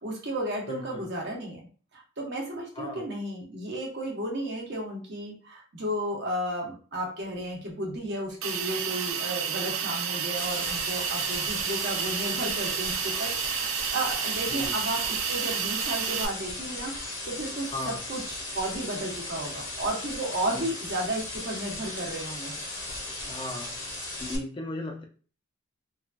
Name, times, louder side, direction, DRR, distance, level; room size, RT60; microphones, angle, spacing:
voice 1, 0.0-1.6 1.9-22.5, right 1 dB, 50° right, 0 dB, 0.8 m, -33 dB
voice 2, 0.7-1.1 2.8-3.0 14.5-14.7 17.7-18.0 20.5-20.7 23.3-23.7 24.2-25.0, left 2 dB, 25° left, 2 dB, 0.3 m, -36 dB
Hiss, 8.4-16.3, right 7 dB, 70° right, 0.4 m, -30 dB
sound 1, 10.4-24.4, left 2 dB, 55° left, 0.7 m, -37 dB
3.1 x 2.3 x 2.4 m, 0.39 s
head